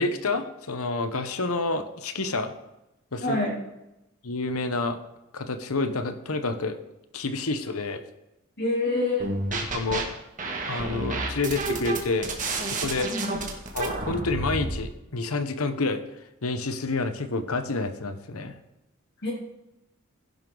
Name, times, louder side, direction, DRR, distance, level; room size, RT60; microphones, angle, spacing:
voice 1, 0.0-2.5 3.1-3.6 4.2-5.0 5.3-6.8 7.1-8.0 9.5-10.1 10.7-13.2 13.7-16.0 16.4-18.6, left 3 dB, 75° left, 9 dB, 1.1 m, -29 dB
voice 2, 3.2-3.5 8.6-9.3 13.1-13.3 19.2-19.3, left 2 dB, 50° left, -2 dB, 3.7 m, -26 dB
sound 1, 9.2-10.0 10.4-14.8, right 2 dB, 35° right, 1.9 m, -30 dB
16.0 x 10.5 x 4.0 m, 0.95 s
head